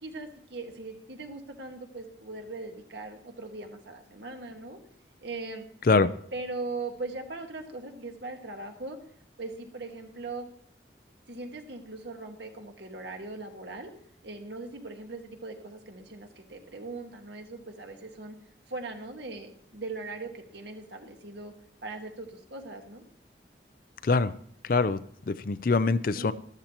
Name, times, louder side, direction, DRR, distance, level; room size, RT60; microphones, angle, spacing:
voice 1, 0.0-4.8 5.2-5.7 6.3-9.0 9.4-10.5 11.3-13.9 14.2-18.4 18.7-21.5 21.8-23.0 26.1-26.3, right 3 dB, 70° right, 4 dB, 1.6 m, -40 dB
voice 2, 24.0-24.3 24.6-26.3, left 4 dB, 50° left, 14 dB, 0.4 m, -24 dB
13.5 x 12.5 x 3.0 m, 0.65 s
head